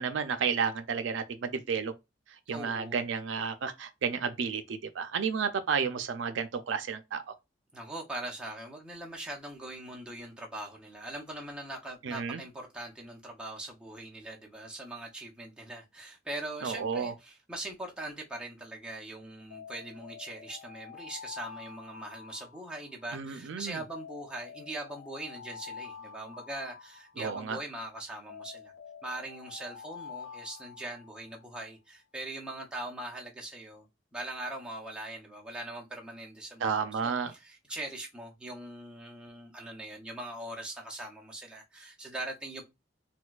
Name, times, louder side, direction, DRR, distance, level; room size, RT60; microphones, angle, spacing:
voice 1, 0.0-1.9 2.5-7.3 12.0-12.4 16.6-17.1 23.1-23.8 27.2-27.6 36.6-37.3, right 6 dB, 70° right, 0.4 m, -32 dB
voice 2, 2.5-3.1 7.7-28.7 29.0-33.9 34.1-42.6, right 1 dB, 5° right, 0.6 m, -41 dB
Alarm, 19.5-23.2 23.9-27.6 28.3-31.5, left 6 dB, 85° left, 0.8 m, -47 dB
4.2 x 2.2 x 2.3 m
head